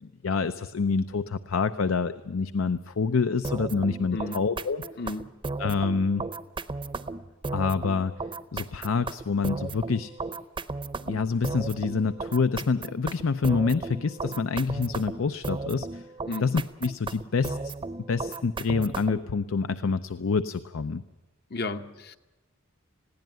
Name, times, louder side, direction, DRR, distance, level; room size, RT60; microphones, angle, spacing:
voice 1, 0.0-4.8 5.6-6.2 7.5-8.1 8.5-10.1 11.1-16.0 16.4-17.7 18.1-21.0, left 4 dB, 80° left, 12 dB, 0.6 m, -27 dB
sound 1, 3.4-19.3, right 3 dB, 25° right, 0.6 m, -35 dB
voice 2, 4.1-4.4 5.0-5.3 16.2-16.5 21.5-22.2, left 2 dB, 50° left, 8 dB, 1.0 m, -33 dB
20.5 x 16.5 x 9.1 m, 1.1 s
head